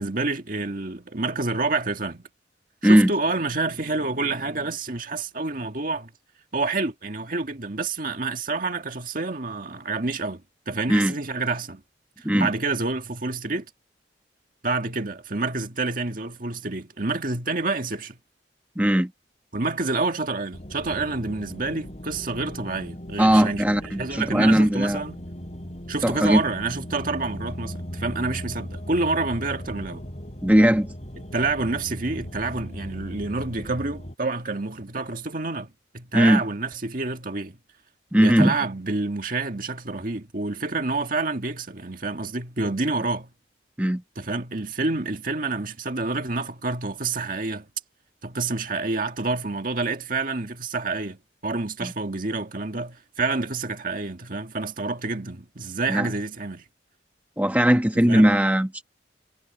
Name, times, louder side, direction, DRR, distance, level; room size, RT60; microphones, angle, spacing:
voice 1, 0.0-2.2 2.8-6.1 6.5-11.8 12.2-13.7 14.6-18.2 19.5-25.2 25.9-30.0 31.2-37.6 38.2-43.3 44.2-47.7 48.2-56.6 57.9-58.3, right 3 dB, 50° right, 1.9 m, -28 dB
voice 2, 18.8-19.1 23.2-25.0 26.0-26.4 30.4-30.9 36.1-36.4 38.1-38.5 43.8-44.0 51.8-51.9 55.9-56.1 57.4-58.8, equal, 10° right, 1.1 m, -19 dB
sound 1, 20.5-34.1, equal, 40° left, 5.7 m, -38 dB
head